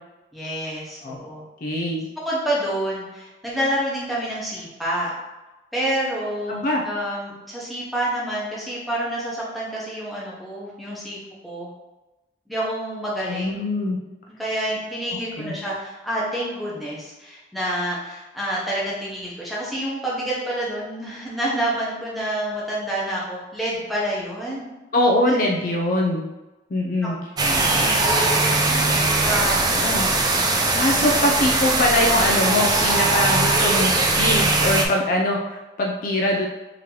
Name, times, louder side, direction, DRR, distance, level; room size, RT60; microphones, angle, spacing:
voice 1, 0.3-1.4 2.2-5.1 5.7-11.7 12.5-13.6 14.3-24.7 25.3-25.4 27.4-29.9, right 1 dB, ahead, -6 dB, 0.9 m, -28 dB
voice 2, 1.6-2.0 6.5-6.8 13.3-14.0 15.4-15.5 24.9-26.2 26.7-27.2 29.8-30.1 30.7-36.5, left 1 dB, 45° left, -1 dB, 0.4 m, -22 dB
sound 1, 27.4-34.9, right 2 dB, 20° right, 0.3 m, -20 dB
3.8 x 2.9 x 3.0 m, 1.1 s
head